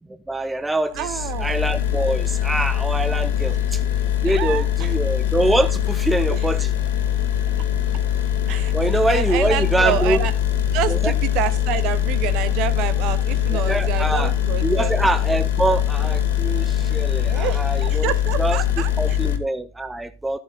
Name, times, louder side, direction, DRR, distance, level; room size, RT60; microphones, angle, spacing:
voice 1, 0.3-3.8 4.2-6.7 8.7-10.2 10.9-11.1 13.5-14.3 14.6-18.1 18.4-18.6 19.0-20.4, right 2 dB, 5° right, 0.6 m, -24 dB
sound 1, 0.9-19.4, left 10 dB, 60° left, 2.5 m, -22 dB
voice 2, 0.9-1.5 3.4-3.6 4.2-4.9 6.3-6.4 8.5-10.3 10.7-14.9 17.3-19.2, right 11 dB, 40° right, 1.4 m, -28 dB
14.5 x 8.2 x 3.9 m
figure-of-eight pair, 90°, 0 cm